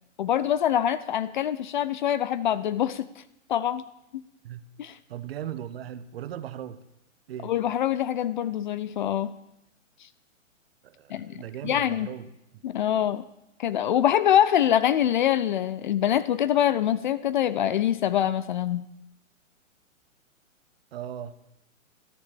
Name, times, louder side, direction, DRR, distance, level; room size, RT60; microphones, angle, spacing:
voice 1, 0.2-3.1 3.5-3.8 4.1-4.2 4.8-4.9 7.4-9.3 11.1-11.3 11.6-12.1 12.6-13.2 13.6-18.8, left 10 dB, 40° left, 15 dB, 0.5 m, -24 dB
voice 2, 5.1-6.8 7.3-7.5 10.8-12.6 20.9-21.4, right 10 dB, 50° right, 13 dB, 1.0 m, -38 dB
13.5 x 10.5 x 6.9 m, 0.86 s
figure-of-eight pair, 120°, 40 cm